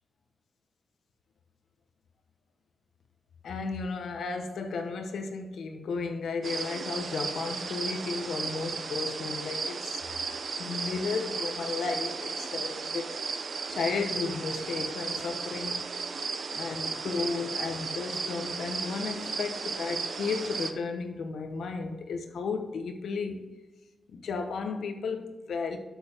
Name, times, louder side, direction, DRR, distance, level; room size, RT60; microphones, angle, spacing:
voice 1, 3.4-10.0 10.6-13.2 13.7-15.9 16.5-23.4 24.1-25.8, left 4 dB, 90° left, 5 dB, 1.1 m, -34 dB
sound 1, 6.4-20.7, right 5 dB, 60° right, 0.7 m, -35 dB
8.2 x 7.7 x 3.5 m, 1.2 s
wide cardioid pair, 110°, 0 cm